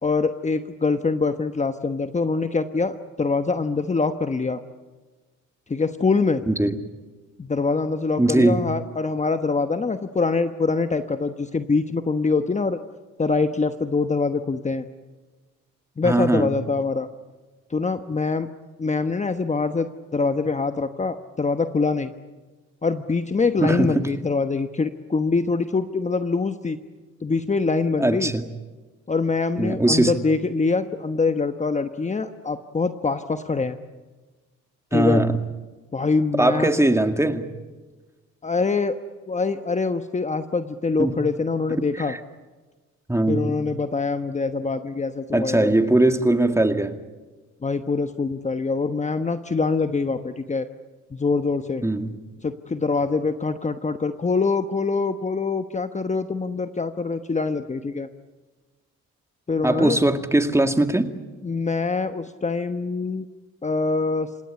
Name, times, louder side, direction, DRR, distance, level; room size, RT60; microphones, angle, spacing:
voice 1, 0.0-4.6 5.7-6.4 7.4-12.8 13.2-14.8 16.0-17.1 17.7-18.5 18.8-22.1 22.8-26.8 27.2-28.3 29.1-33.8 34.9-35.2 35.9-36.8 38.4-39.0 39.3-42.1 43.3-45.7 47.6-50.7 51.1-51.8 52.4-58.1 59.5-60.0 61.4-63.3 63.6-64.3, left 4 dB, 25° left, 8 dB, 1.1 m, -24 dB
voice 2, 6.5-6.8 8.2-8.7 16.0-16.5 23.6-24.0 28.0-28.4 29.6-30.2 34.9-35.4 36.4-37.4 41.0-41.2 42.1-42.2 43.1-43.6 45.3-47.0 51.8-52.1 59.6-61.1, right 1 dB, 10° right, 7 dB, 2.0 m, -20 dB
28.0 x 17.5 x 10.0 m, 1.3 s
cardioid pair, 90°, 30 cm